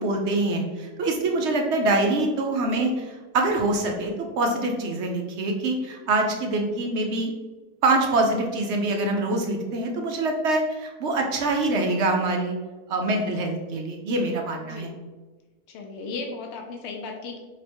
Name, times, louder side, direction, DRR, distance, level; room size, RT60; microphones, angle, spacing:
voice 1, 0.0-7.3 7.8-12.5 12.9-14.9, right 2 dB, 65° right, 2 dB, 0.7 m, -25 dB
voice 2, 14.6-15.0 15.7-17.4, left 3 dB, 65° left, 2 dB, 0.7 m, -36 dB
3.3 x 2.9 x 4.3 m, 1.3 s
omnidirectional pair, 1.6 m